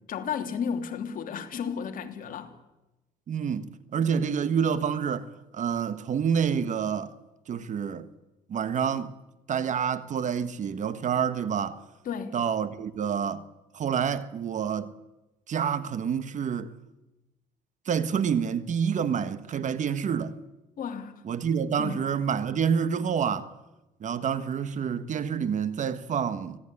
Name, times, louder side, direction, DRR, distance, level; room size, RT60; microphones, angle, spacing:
voice 1, 0.1-2.5 12.0-12.4 20.8-21.2 21.8-22.0, left 7 dB, 55° left, 3.2 m, -33 dB
voice 2, 3.3-7.1 7.5-8.1 8.5-9.1 9.5-11.8 12.3-13.5 13.7-14.9 15.5-16.7 17.9-20.3 21.2-23.5 24.0-26.6, right 7 dB, 45° right, 1.5 m, -28 dB
25.5 x 18.0 x 9.9 m
cardioid pair, 110°, 17 cm